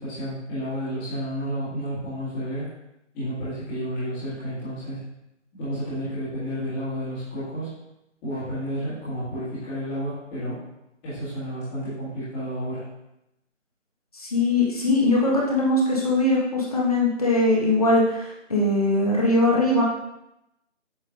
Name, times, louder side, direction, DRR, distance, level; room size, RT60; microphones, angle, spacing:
voice 1, 0.0-2.7 3.1-5.0 5.5-7.8 8.2-10.6 11.0-12.9, equal, 5° left, -12 dB, 1.8 m, -31 dB
voice 2, 14.1-19.8, left 2 dB, 30° left, -4 dB, 1.4 m, -21 dB
8.3 x 7.2 x 2.6 m, 0.87 s
figure-of-eight pair, 155°, 37 cm